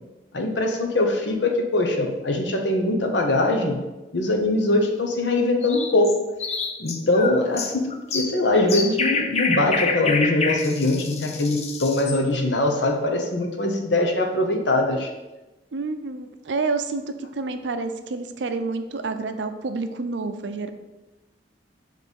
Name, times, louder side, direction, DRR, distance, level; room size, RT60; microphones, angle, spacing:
voice 1, 0.3-3.8 4.1-6.2 6.8-15.1, left 2 dB, 80° left, 3 dB, 1.0 m, -22 dB
sound 1, 5.6-12.2, left 4 dB, 40° left, 0.6 m, -27 dB
voice 2, 15.7-20.7, right 3 dB, 85° right, 8 dB, 0.6 m, -29 dB
6.6 x 3.3 x 5.2 m, 1.1 s
head